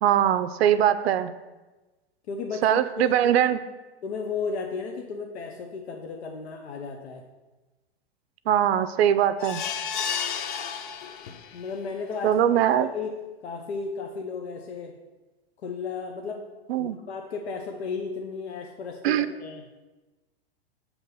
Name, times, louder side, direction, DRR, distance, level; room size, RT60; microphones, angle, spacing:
voice 1, 0.0-1.3 2.6-3.6 8.5-9.6 12.2-12.9 16.7-17.0 19.0-19.3, right 10 dB, 75° right, 12 dB, 0.5 m, -21 dB
voice 2, 2.3-3.5 4.0-7.2 11.5-12.4 12.8-13.1 13.4-14.9 15.6-16.5 16.8-19.6, left 5 dB, 85° left, 3 dB, 0.7 m, -34 dB
sound 1, 9.4-11.7 12.1-12.2 12.6-12.7, left 7 dB, 50° left, 0.6 m, -32 dB
6.6 x 3.0 x 5.4 m, 1.2 s
hypercardioid pair, 125°, 31 cm